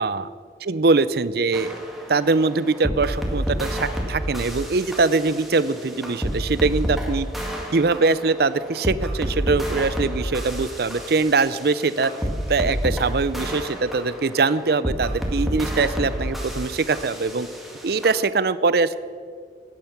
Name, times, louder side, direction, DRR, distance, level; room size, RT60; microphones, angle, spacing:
voice 1, 0.6-1.7 2.1-7.3 7.7-12.1 12.5-17.5 17.8-19.0, right 3 dB, 55° right, 15 dB, 0.6 m, -22 dB
sound 1, 1.5-18.2, equal, ahead, 1.9 m, -30 dB
17.0 x 10.5 x 6.0 m, 2.1 s
head